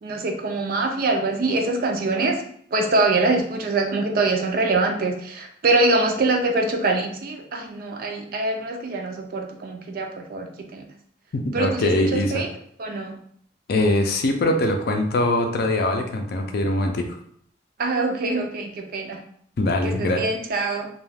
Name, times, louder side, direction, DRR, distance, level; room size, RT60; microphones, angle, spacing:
voice 1, 0.0-2.4 2.7-10.5 10.7-10.8 11.5-12.5 12.8-13.2 17.8-19.2 19.8-20.9, right 2 dB, 55° right, 3 dB, 0.4 m, -24 dB
voice 2, 11.3-12.5 13.7-17.1 19.6-20.2, left 1 dB, 55° left, 4 dB, 0.4 m, -22 dB
2.3 x 2.3 x 3.3 m, 0.64 s
head